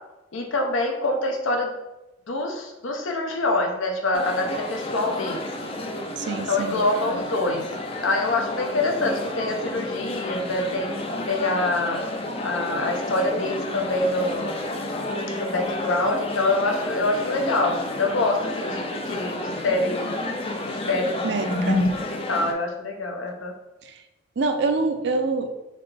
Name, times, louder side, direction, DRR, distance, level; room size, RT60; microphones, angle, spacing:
voice 1, 0.3-1.7 2.3-5.5 6.5-7.7 8.0-10.9 11.3-12.0 12.4-14.6 15.3-20.1 20.7-23.5, left 2 dB, 85° left, 2 dB, 0.7 m, -25 dB
sound 1, 4.1-22.5, left 1 dB, 30° left, 0.4 m, -31 dB
voice 2, 6.2-6.7 21.2-21.8 23.8-24.0 24.4-25.5, right 3 dB, 60° right, 7 dB, 0.4 m, -25 dB
4.1 x 3.4 x 3.3 m, 1.0 s
head